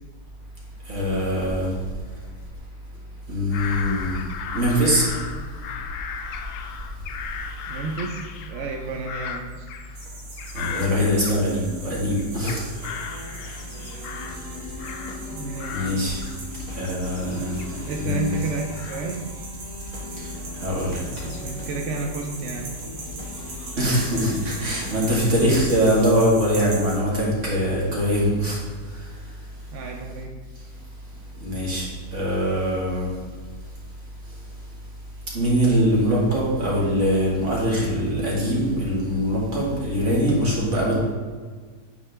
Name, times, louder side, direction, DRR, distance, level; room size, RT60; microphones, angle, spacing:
voice 1, 0.9-1.7 3.3-4.2 4.5-5.1 10.5-12.7 15.7-16.2 16.7-17.5 18.0-18.4 20.2-20.3 20.6-21.0 23.8-28.6 31.3-33.1 35.3-41.0, equal, 45° right, -5 dB, 2.1 m, -22 dB
Bird vocalization bird call bird song / Crow, 3.5-11.8 12.2-15.3 15.6-21.6 22.1-22.7, left 6 dB, 80° left, 0.7 m, -37 dB
voice 2, 7.7-8.2 8.5-9.7 15.3-15.9 17.8-19.2 21.2-22.7 29.7-30.3, right 3 dB, 65° right, 2 dB, 0.7 m, -31 dB
sound 1, 9.9-27.0, right 2 dB, 85° right, 1.9 m, -40 dB
sound 2, 12.7-25.7, left 3 dB, 30° left, 1.8 m, -40 dB
8.6 x 4.4 x 3.3 m, 1.5 s
omnidirectional pair, 1.9 m